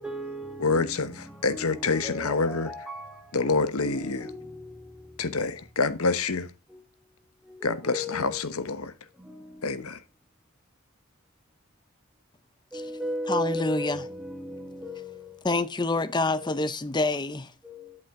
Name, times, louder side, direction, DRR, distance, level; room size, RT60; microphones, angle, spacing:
voice 1, 0.0-0.7 1.9-3.2 3.8-4.9 7.5-8.4 9.2-9.6 12.7-14.1 14.4-15.4 17.6-18.0, equal, 5° right, 1.3 m, -35 dB
voice 2, 0.6-2.7 3.3-4.3 5.2-6.5 7.6-8.9 9.6-10.0, left 4 dB, 80° left, 1.1 m, -27 dB
voice 3, 13.2-14.1 15.4-17.5, left 2 dB, 20° left, 0.7 m, -27 dB
11.0 x 8.6 x 3.7 m
head